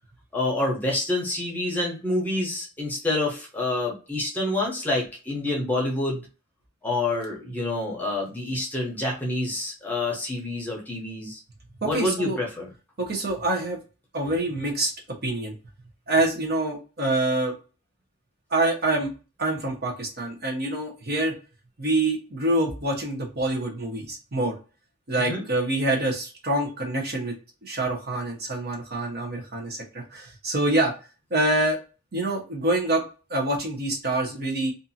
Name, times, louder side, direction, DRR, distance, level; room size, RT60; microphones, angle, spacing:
voice 1, 0.3-6.2 6.8-11.4 11.8-12.7 25.2-25.4, left 2 dB, 10° left, -2 dB, 0.7 m, -27 dB
voice 2, 11.8-12.4 13.0-13.8 14.1-14.9 15.2-15.5 16.1-17.5 18.5-19.1 19.4-21.3 21.8-24.5 25.1-27.3 27.6-30.9 31.3-31.8 32.1-33.0 33.3-34.7, right 2 dB, 45° right, 1 dB, 0.8 m, -26 dB
2.6 x 2.4 x 2.6 m, 0.34 s
head